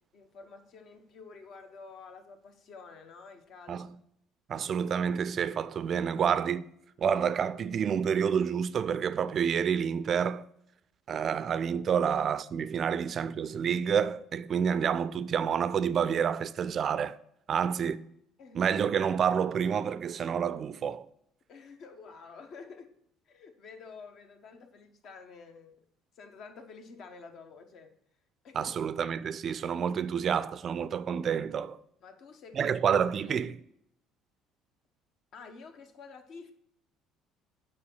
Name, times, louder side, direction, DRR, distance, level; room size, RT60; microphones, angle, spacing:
voice 1, 0.1-3.9 12.0-12.1 12.9-13.0 17.5-17.7 18.4-18.6 21.5-22.9 23.3-25.8 26.1-27.9 28.4-28.8 32.0-32.8 33.3-33.5 35.3-36.5, left 4 dB, 50° left, 1.1 m, -49 dB
voice 2, 4.5-6.7 7.0-10.5 11.1-17.2 17.5-18.0 18.5-21.0 28.6-31.8 32.5-33.6, right 7 dB, 45° right, 0.4 m, -28 dB
8.9 x 4.7 x 5.5 m
figure-of-eight pair, 55°, 0 cm